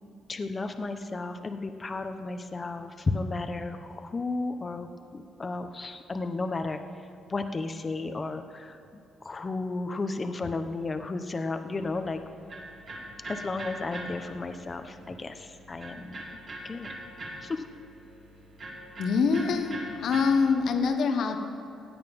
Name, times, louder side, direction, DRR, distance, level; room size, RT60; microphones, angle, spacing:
voice 1, 0.3-6.8 7.3-8.8 9.2-12.2 13.3-16.2 16.6-16.9 17.4-17.6, left 3 dB, 30° left, 8 dB, 0.9 m, -33 dB
Electric guitar, 11.8-20.8, right 1 dB, 50° right, 3.2 m, -43 dB
voice 2, 19.0-21.4, left 5 dB, 65° left, 6 dB, 1.2 m, -25 dB
16.0 x 9.0 x 5.3 m, 2.7 s
cardioid pair, 90°, 0 cm